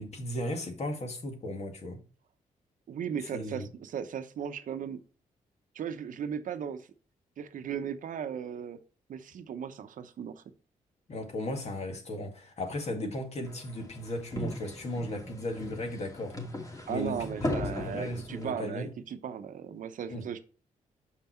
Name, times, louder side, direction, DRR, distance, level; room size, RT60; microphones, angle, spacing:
voice 1, 0.0-2.0 3.3-3.7 11.1-16.4 16.7-17.3 17.6-18.9 20.1-20.2, left 1 dB, 50° left, 2.0 m, -36 dB
voice 2, 2.9-5.0 5.7-6.8 7.4-8.8 9.1-10.4 16.9-20.4, right 8 dB, 70° right, 0.8 m, -36 dB
sound 1, 13.4-18.4, left 1 dB, 25° left, 2.4 m, -38 dB
6.7 x 5.6 x 4.3 m
cardioid pair, 80°, 14 cm